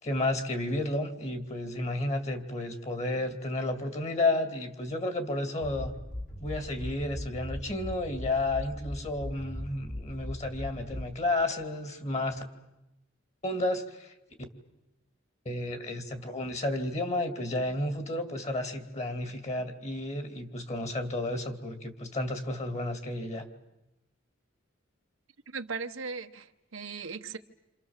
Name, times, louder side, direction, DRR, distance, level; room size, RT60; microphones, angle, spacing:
voice 1, 0.0-5.9 6.4-12.4 13.4-14.1 15.4-23.4, left 2 dB, 35° left, 2.6 m, -32 dB
sound 1, 5.6-11.4, left 1 dB, 50° left, 3.2 m, -39 dB
voice 2, 25.5-27.4, right 5 dB, 85° right, 1.2 m, -38 dB
28.0 x 27.5 x 7.4 m
head